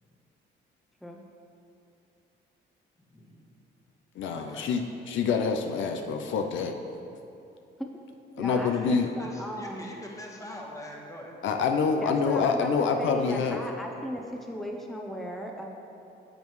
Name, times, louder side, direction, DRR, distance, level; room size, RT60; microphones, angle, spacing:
voice 1, 3.1-3.6 4.3-4.6 6.3-6.4 8.4-11.6, left 1 dB, 15° left, -1 dB, 1.3 m, -44 dB
voice 2, 4.2-4.8 5.1-6.8 8.4-9.1 11.4-13.6, left 5 dB, 75° left, 5 dB, 0.6 m, -26 dB
voice 3, 8.4-9.9 12.0-15.7, equal, ahead, 1 dB, 0.7 m, -37 dB
9.9 x 7.2 x 3.1 m, 2.7 s
cardioid pair, 90°, 20 cm